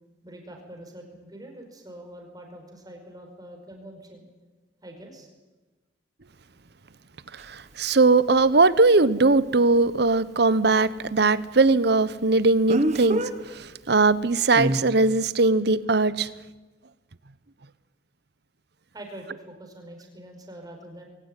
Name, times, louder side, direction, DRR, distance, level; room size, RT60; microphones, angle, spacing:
voice 1, 0.2-4.2 4.8-5.3 18.9-21.1, right 1 dB, 20° right, 3 dB, 4.9 m, -44 dB
Speech, 7.4-7.5 12.7-13.3 14.6-14.8, right 1 dB, 40° right, 1.6 m, -24 dB
voice 2, 7.5-16.3, right 3 dB, 65° right, 17 dB, 0.9 m, -20 dB
22.5 x 18.0 x 9.1 m, 1.2 s
head